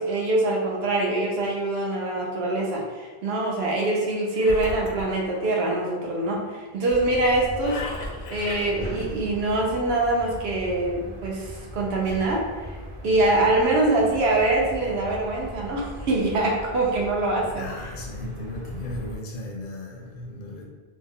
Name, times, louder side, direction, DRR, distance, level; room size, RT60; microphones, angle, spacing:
voice 1, 0.0-7.8 8.3-12.8 13.0-17.6, right 2 dB, 80° right, -1 dB, 0.9 m, -24 dB
Engine, 4.3-5.9 7.6-8.9, left 2 dB, 85° left, 0.9 m, -36 dB
sound 1, 6.9-19.1, equal, 35° right, 0.7 m, -39 dB
voice 2, 17.5-20.6, left 1 dB, 65° left, -1 dB, 0.7 m, -36 dB
2.6 x 2.0 x 3.6 m, 1.3 s
omnidirectional pair, 1.1 m